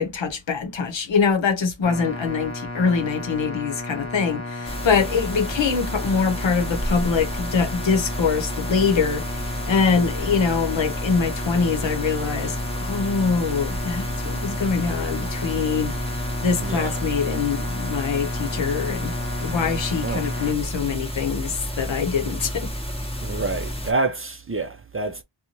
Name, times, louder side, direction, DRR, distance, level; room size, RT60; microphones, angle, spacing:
voice 1, 0.0-16.0 16.4-19.2 19.4-22.7, left 5 dB, 70° left, 0.8 m, -24 dB
sound 1, 1.8-20.5, left 2 dB, 35° left, 0.7 m, -33 dB
sound 2, 4.6-23.9, equal, 10° left, 1.0 m, -31 dB
voice 2, 16.6-16.9 20.0-20.5 23.2-25.2, right 3 dB, 30° right, 0.4 m, -28 dB
2.6 x 2.2 x 2.9 m
wide cardioid pair, 70°, 47 cm